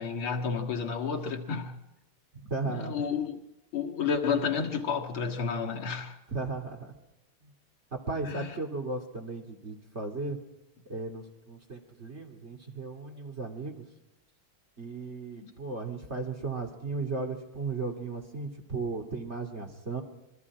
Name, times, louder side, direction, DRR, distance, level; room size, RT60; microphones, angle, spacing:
voice 1, 0.0-1.7 2.6-3.4 3.7-6.2 8.2-8.5 15.4-15.5, left 6 dB, 75° left, 2.6 m, -31 dB
voice 2, 2.4-3.1 6.3-6.9 7.9-10.4 10.9-13.8 14.8-20.0, right 3 dB, 30° right, 2.9 m, -36 dB
27.5 x 22.5 x 4.9 m
omnidirectional pair, 2.3 m